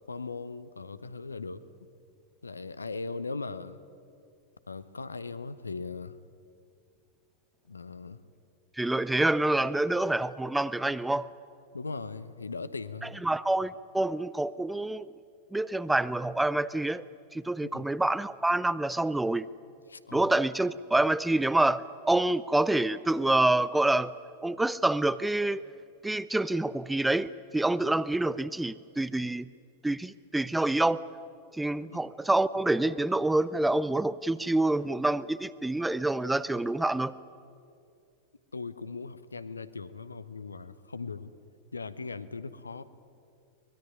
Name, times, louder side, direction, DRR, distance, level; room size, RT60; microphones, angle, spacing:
voice 1, 0.0-1.6 2.4-3.8 4.7-6.2 7.7-8.2 11.7-13.3 17.6-17.9 19.9-20.3 31.9-32.0 38.5-41.3 41.7-42.8, left 4 dB, 80° left, 14 dB, 0.9 m, -39 dB
voice 2, 8.8-11.3 13.2-15.1 15.5-17.0 17.3-19.5 20.1-24.1 24.4-25.6 26.0-29.5 29.8-31.0 31.5-37.1, right 2 dB, 5° right, 18 dB, 0.5 m, -27 dB
23.5 x 21.0 x 9.8 m, 2.4 s
figure-of-eight pair, 90°, 0 cm